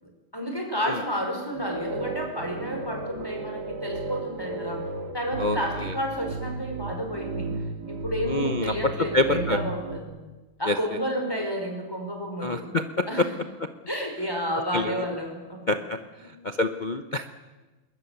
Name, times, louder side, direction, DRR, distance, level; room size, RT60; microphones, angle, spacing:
voice 1, 0.0-4.8 5.1-7.5 7.9-10.1 10.6-12.6 13.1-13.4 13.9-15.8 16.2-16.3, equal, 10° left, 2 dB, 5.1 m, -31 dB
sound 1, 1.5-10.0, right 3 dB, 50° right, 2.4 m, -34 dB
voice 2, 8.3-8.7 9.1-9.6 10.7-10.8 12.4-12.8 14.7-14.9 15.7-16.0 16.4-17.3, left 2 dB, 80° left, 7 dB, 0.4 m, -26 dB
21.5 x 20.0 x 9.4 m, 1.2 s
omnidirectional pair, 2.3 m